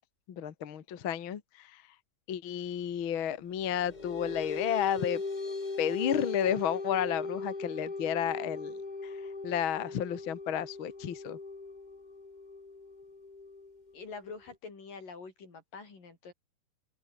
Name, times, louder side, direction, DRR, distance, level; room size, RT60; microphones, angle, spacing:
voice 1, 0.3-1.8 2.3-5.2 5.8-9.2 9.4-11.4, left 9 dB, 45° left, 1.9 m, -32 dB
sound 1, 3.6-14.5, left 3 dB, 25° left, 0.9 m, -39 dB
voice 2, 13.9-16.3, left 4 dB, 80° left, 7.8 m, -45 dB
open air
omnidirectional pair, 3.8 m